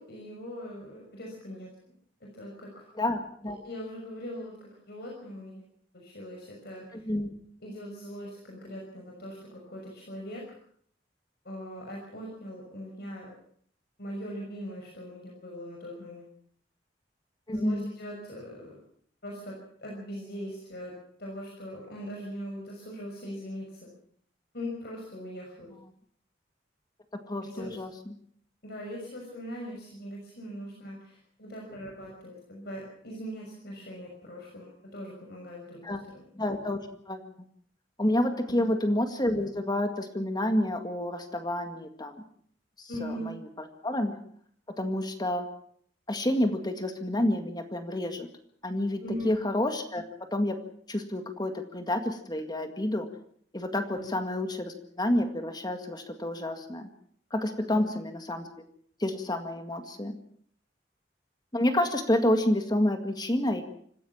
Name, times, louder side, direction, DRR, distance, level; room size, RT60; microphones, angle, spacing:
voice 1, 0.0-1.7 2.2-2.9 3.4-5.6 5.9-7.0 7.6-10.4 11.4-13.3 14.0-16.3 17.5-18.8 19.2-23.9 24.5-25.7 27.4-27.8 28.6-36.2 38.5-38.7 42.9-43.4 49.0-49.3 53.9-54.1 57.6-57.9, equal, 60° left, -1 dB, 6.1 m, -41 dB
voice 2, 3.0-3.6 7.1-7.3 17.5-17.9 27.3-28.1 35.8-36.0 36.4-36.8 37.1-37.3 38.0-42.2 42.8-44.2 44.8-45.5 46.1-48.3 48.6-50.0 50.3-50.5 50.9-53.1 53.5-56.9 57.3-58.5 59.0-60.2 61.5-63.6, left 1 dB, 25° left, 6 dB, 2.0 m, -29 dB
26.0 x 15.5 x 7.3 m, 0.62 s
head